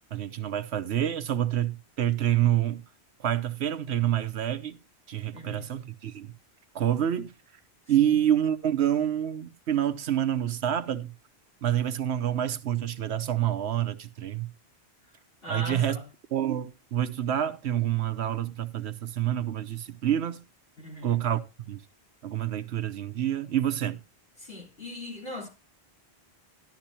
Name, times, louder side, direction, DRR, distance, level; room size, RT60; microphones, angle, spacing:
voice 1, 0.1-2.8 3.2-4.8 5.1-6.3 6.7-7.3 7.9-11.1 11.6-14.5 15.5-16.0 16.3-20.4 21.0-21.8 22.2-24.0, right 11 dB, 80° right, 1.1 m, -27 dB
voice 2, 5.3-5.7 8.0-8.2 15.4-16.1 20.8-21.2 24.4-25.5, left 1 dB, 60° left, 4.2 m, -39 dB
12.0 x 11.5 x 2.8 m
omnidirectional pair, 1.1 m